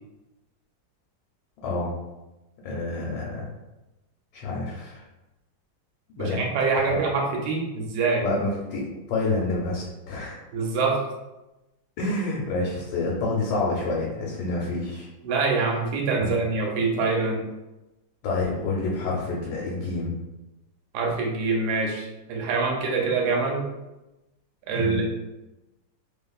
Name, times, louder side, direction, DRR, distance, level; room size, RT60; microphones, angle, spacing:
voice 1, 2.6-3.5 4.3-5.0 6.2-6.5 6.8-7.0 8.2-8.8 9.1-10.4 12.0-15.1 16.2-16.4 18.2-20.2 24.7-25.0, left 3 dB, 85° left, -3 dB, 1.2 m, -28 dB
voice 2, 6.2-8.2 10.5-11.0 15.2-17.4 20.9-23.7 24.7-25.1, right 4 dB, 75° right, 0 dB, 1.0 m, -25 dB
2.6 x 2.4 x 2.3 m, 1.0 s
omnidirectional pair, 1.9 m